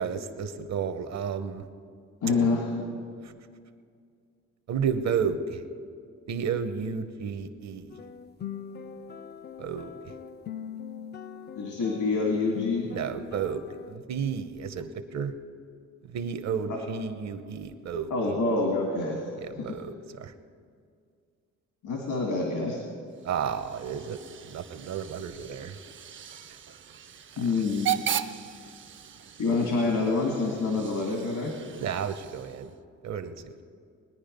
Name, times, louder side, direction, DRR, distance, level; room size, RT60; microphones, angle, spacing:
voice 1, 0.0-1.6 3.2-3.3 4.7-5.6 6.3-8.0 9.6-10.1 12.9-15.3 16.1-18.1 19.4-20.3 23.2-25.8 31.8-32.7 33.0-33.6, right 6 dB, 60° right, 10 dB, 1.0 m, -32 dB
voice 2, 2.2-2.7 11.6-13.0 16.7-16.8 18.1-19.2 19.6-19.8 21.8-22.8 27.4-27.9 29.4-31.5, left 3 dB, 80° left, 0 dB, 2.1 m, -27 dB
sound 1, 7.9-14.0, left 7 dB, 35° left, 0.5 m, -42 dB
Hiss / Train / Alarm, 23.1-32.8, right 10 dB, 40° right, 0.6 m, -38 dB
20.5 x 10.0 x 5.3 m, 2.2 s
cardioid pair, 90°, 30 cm